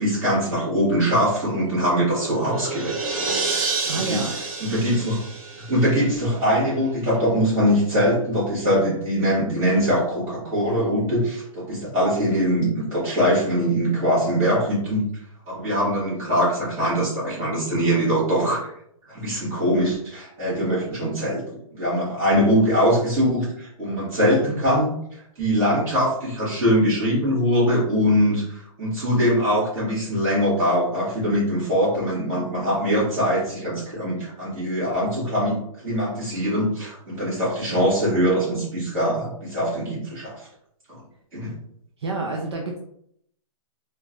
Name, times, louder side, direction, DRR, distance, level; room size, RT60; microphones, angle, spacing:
voice 1, 0.0-3.0 3.8-4.2 4.6-5.2 5.5-15.1 15.5-18.7 19.1-21.4 21.8-35.6 35.8-40.4 40.9-41.0 41.3-41.6, equal, 15° right, -9 dB, 1.1 m, -22 dB
sound 1, 1.8-6.4, right 4 dB, 75° right, 0.9 m, -29 dB
voice 2, 3.6-4.3 11.8-12.0 42.0-42.8, right 3 dB, 50° right, 0 dB, 0.4 m, -29 dB
3.2 x 2.1 x 2.4 m, 0.71 s
hypercardioid pair, 175°, 18 cm